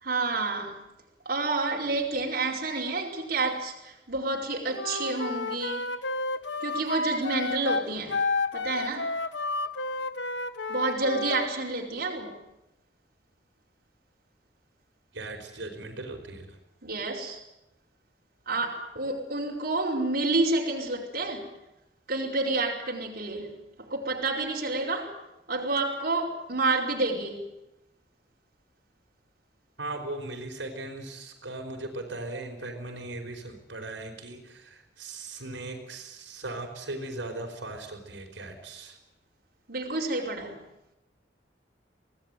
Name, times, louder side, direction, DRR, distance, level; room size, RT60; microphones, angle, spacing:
voice 1, 0.0-0.8 1.2-5.9 6.6-8.2 8.5-9.1 10.7-12.4 16.8-17.4 18.5-21.5 22.1-23.5 23.9-25.1 25.5-27.4 39.7-40.6, right 3 dB, 55° right, -2 dB, 4.9 m, -29 dB
Wind instrument woodwind instrument, 4.7-11.5, left 3 dB, 70° left, 1.3 m, -31 dB
voice 2, 15.1-16.6 29.8-39.0, right 2 dB, 85° right, 2 dB, 4.8 m, -38 dB
25.5 x 18.0 x 9.2 m, 0.91 s
head